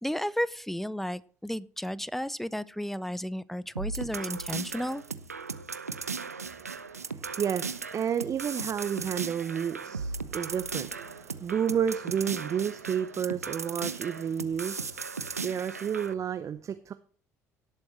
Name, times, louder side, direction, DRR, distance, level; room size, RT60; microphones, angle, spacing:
voice 1, 0.0-5.0, equal, 5° left, 20 dB, 0.6 m, -33 dB
sound 1, 3.8-16.1, right 5 dB, 90° right, 0.5 m, -37 dB
voice 2, 6.5-14.9 15.4-16.9, right 8 dB, 40° right, 11 dB, 0.7 m, -31 dB
18.0 x 7.9 x 3.2 m, 0.44 s
figure-of-eight pair, 55°, 8 cm